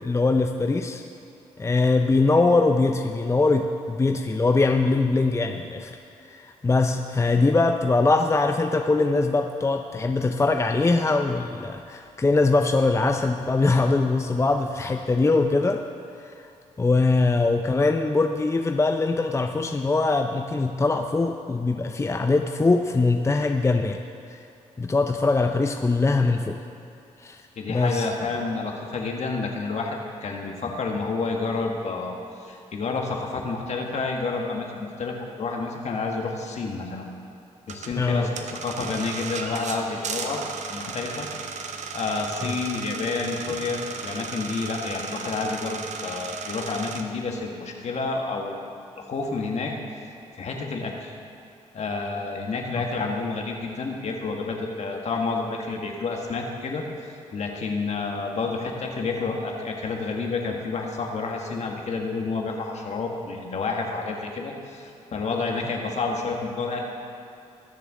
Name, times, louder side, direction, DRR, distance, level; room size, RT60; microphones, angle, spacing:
voice 1, 0.0-1.0 1.6-5.9 6.3-15.8 16.8-24.0 24.3-24.4 24.8-26.6 27.2-27.4 27.7-28.1 38.0-38.3 42.4-42.5 52.7-52.8, left 3 dB, 20° left, 5 dB, 0.6 m, -22 dB
voice 2, 27.6-37.1 37.7-38.3 38.6-40.4 40.7-41.3 41.9-48.6 49.0-49.7 50.4-51.1 51.7-56.9 57.3-66.8, left 4 dB, 60° left, 1 dB, 1.8 m, -29 dB
sound 1, 37.7-47.0, right 5 dB, 65° right, 0.9 m, -35 dB
20.0 x 6.8 x 3.8 m, 2.7 s
supercardioid pair, 60°, 13 cm